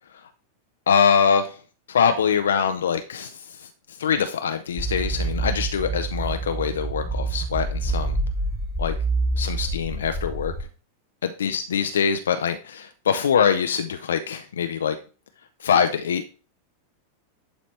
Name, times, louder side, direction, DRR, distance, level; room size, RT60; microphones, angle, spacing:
voice 1, 0.9-1.6 1.9-8.2 8.8-8.9 9.4-10.5 11.2-15.0 15.6-16.3, left 7 dB, 65° left, 8 dB, 0.5 m, -23 dB
sound 1, 4.8-10.6, right 2 dB, 10° right, 1.3 m, -27 dB
11.0 x 4.0 x 3.2 m, 0.37 s
figure-of-eight pair, 90°, 0 cm